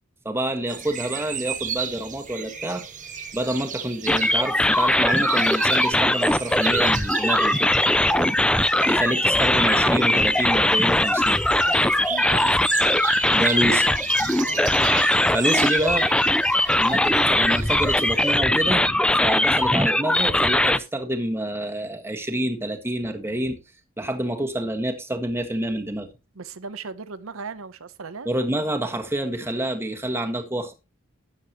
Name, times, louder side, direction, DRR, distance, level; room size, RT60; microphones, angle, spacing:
voice 1, 0.2-2.8 3.3-7.7 8.8-11.4 13.3-13.9 15.3-16.1 16.7-18.9 19.2-23.6 24.0-26.1 28.2-30.7, right 1 dB, 10° right, 1.6 m, -27 dB
sound 1, 0.7-18.4, right 7 dB, 40° right, 1.7 m, -34 dB
sound 2, 4.1-20.8, left 1 dB, 5° left, 0.4 m, -20 dB
voice 2, 8.1-8.4 11.6-12.6 14.4-14.8 26.4-28.3, right 4 dB, 80° right, 0.8 m, -37 dB
12.5 x 9.8 x 3.0 m
head